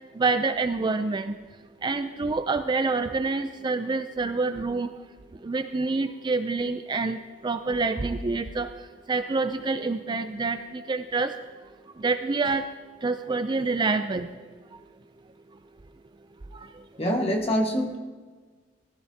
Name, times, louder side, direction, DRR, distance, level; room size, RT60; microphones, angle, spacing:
voice 1, 0.1-1.3 1.8-4.9 5.4-7.2 7.4-8.7 9.1-11.3 12.0-12.6 13.0-14.3 16.5-16.7, right 3 dB, 25° right, 9 dB, 0.4 m, -27 dB
voice 2, 17.0-18.0, equal, 30° left, 2 dB, 1.5 m, -25 dB
19.0 x 14.5 x 2.8 m, 1.4 s
head